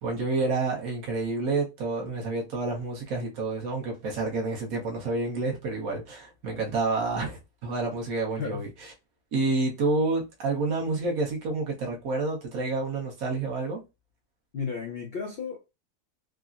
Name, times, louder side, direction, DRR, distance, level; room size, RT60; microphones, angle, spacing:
voice 1, 0.0-8.7 9.3-13.8, right 3 dB, 65° right, 1.4 m, -29 dB
voice 2, 8.3-8.6 14.5-15.7, left 6 dB, 85° left, 0.5 m, -34 dB
3.6 x 2.0 x 2.4 m
omnidirectional pair, 1.7 m